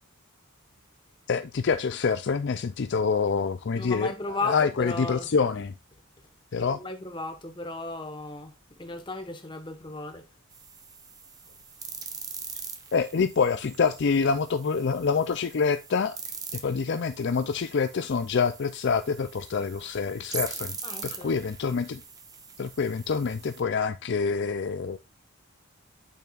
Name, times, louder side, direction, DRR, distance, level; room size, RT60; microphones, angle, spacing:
voice 1, 1.3-4.1 4.5-5.7 6.5-6.8 12.9-16.2 16.5-20.8 21.0-22.0 22.6-25.0, left 5 dB, 50° left, 0.4 m, -26 dB
voice 2, 3.7-5.3 6.6-10.3 20.8-21.4, left 2 dB, 20° left, 1.3 m, -35 dB
sound 1, 10.5-23.6, right 5 dB, 15° right, 1.0 m, -42 dB
8.7 x 7.2 x 2.5 m
head